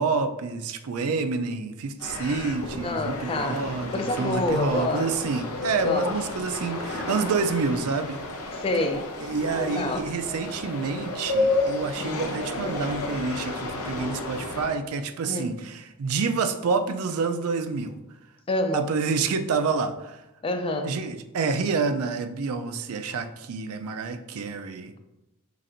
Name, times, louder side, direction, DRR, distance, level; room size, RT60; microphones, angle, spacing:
voice 1, 0.0-8.2 9.2-18.0 18.7-20.2 20.8-24.9, right 4 dB, 70° right, 8 dB, 0.4 m, -28 dB
sound 1, 2.0-14.7, left 2 dB, 80° left, 0.7 m, -31 dB
voice 2, 2.8-5.1 5.8-6.1 8.5-9.1 9.6-10.1 12.0-12.2 15.2-15.5 18.5-18.9 20.4-21.0, left 2 dB, 25° left, 6 dB, 0.4 m, -28 dB
5.7 x 3.3 x 2.5 m, 0.93 s
head